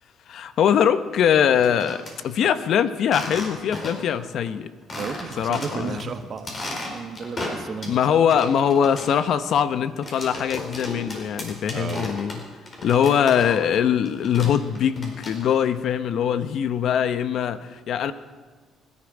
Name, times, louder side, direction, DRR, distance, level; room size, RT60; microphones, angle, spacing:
voice 1, 0.3-4.7 5.4-6.1 7.9-12.4 12.8-18.1, left 8 dB, 60° left, 12 dB, 0.8 m, -22 dB
sound 1, 1.4-2.2 3.0-4.2 4.5-4.6 4.9-6.0 6.4-8.0 8.3-13.8 14.1-15.7, left 2 dB, 35° left, 4.6 m, -35 dB
voice 2, 4.9-8.0 11.7-12.1, right 6 dB, 45° right, 8 dB, 1.3 m, -34 dB
24.0 x 11.0 x 4.9 m, 1.5 s
cardioid pair, 100°, 0 cm